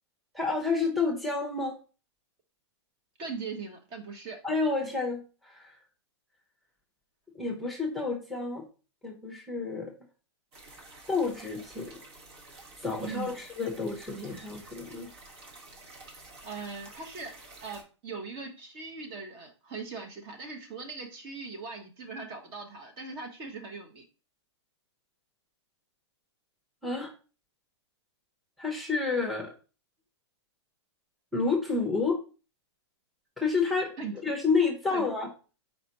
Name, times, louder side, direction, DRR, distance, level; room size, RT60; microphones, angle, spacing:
voice 1, 0.3-1.8 4.4-5.7 7.3-8.6 9.0-9.9 11.1-12.0 12.8-15.1 26.8-27.1 28.6-29.5 31.3-32.2 33.4-33.9 34.2-35.3, left 4 dB, ahead, -1 dB, 0.8 m, -29 dB
voice 2, 3.2-4.4 13.0-13.3 16.4-24.1 34.0-34.1 34.9-35.0, right 4 dB, 35° right, 4 dB, 1.1 m, -40 dB
sound 1, 10.5-17.8, right 2 dB, 65° right, 1.6 m, -50 dB
4.4 x 4.0 x 2.9 m, 0.35 s
hypercardioid pair, 135°, 15 cm